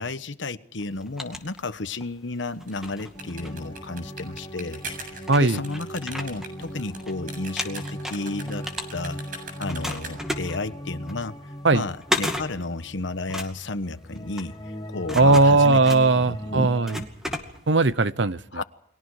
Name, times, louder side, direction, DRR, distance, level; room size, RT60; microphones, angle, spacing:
voice 1, 0.0-4.8 5.1-8.7 8.9-11.4 11.7-15.8 16.2-16.7 18.5-18.6, left 2 dB, 75° left, 1.2 m, -32 dB
sound 1, 0.8-2.1 2.6-4.3 4.8-4.9 5.2-7.1 7.4-9.3 9.7-17.9, left 1 dB, 5° right, 2.3 m, -34 dB
sound 2, 2.5-10.4, right 2 dB, 45° right, 7.5 m, -41 dB
sound 3, 3.1-13.6 13.9-17.1, equal, 20° left, 1.7 m, -38 dB
voice 2, 5.3-5.6 11.6-11.8 15.1-17.0 17.7-18.6, right 3 dB, 70° right, 0.9 m, -18 dB
30.0 x 23.0 x 4.9 m
head